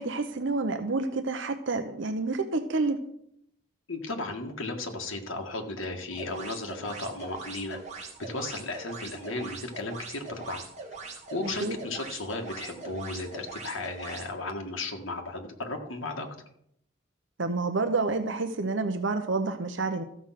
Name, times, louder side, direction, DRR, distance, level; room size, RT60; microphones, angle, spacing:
voice 1, 0.0-3.0 11.6-11.8 17.4-20.0, right 3 dB, 65° right, 7 dB, 0.9 m, -29 dB
voice 2, 3.9-10.6 11.1-16.3, left 2 dB, 75° left, 2 dB, 1.8 m, -35 dB
sound 1, 6.1-14.3, right 4 dB, 35° right, 2.5 m, -42 dB
14.0 x 7.1 x 5.9 m, 0.72 s
head